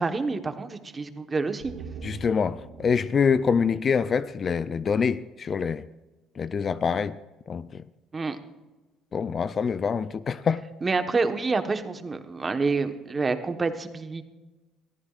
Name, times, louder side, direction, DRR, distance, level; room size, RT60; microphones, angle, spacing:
voice 1, 0.0-1.7 8.1-8.4 10.8-14.2, right 4 dB, 25° right, 1.2 m, -28 dB
sound 1, 1.6-5.0 5.3-5.4, right 5 dB, 85° right, 1.4 m, -44 dB
voice 2, 2.0-5.8 6.4-7.2 7.5-7.8 9.1-10.6, left 6 dB, 35° left, 0.4 m, -25 dB
22.0 x 14.5 x 2.5 m
cardioid pair, 105°, 0 cm